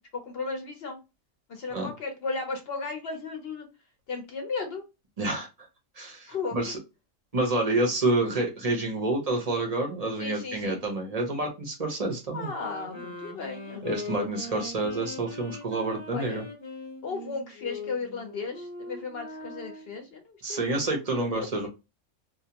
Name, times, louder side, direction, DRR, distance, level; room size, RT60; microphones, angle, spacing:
voice 1, 0.1-1.0 1.5-3.7 4.1-4.8 6.3-6.8 10.2-10.8 12.3-13.9 14.2-14.7 16.1-16.4 17.0-21.7, left 4 dB, 55° left, 4 dB, 0.8 m, -36 dB
voice 2, 5.2-5.5 6.0-6.8 7.3-12.5 13.8-16.4 20.4-21.7, right 2 dB, 40° right, 2 dB, 0.5 m, -28 dB
sound 1, 12.4-20.0, left 3 dB, 25° left, 0.8 m, -41 dB
2.7 x 2.1 x 2.8 m, 0.26 s
omnidirectional pair, 1.4 m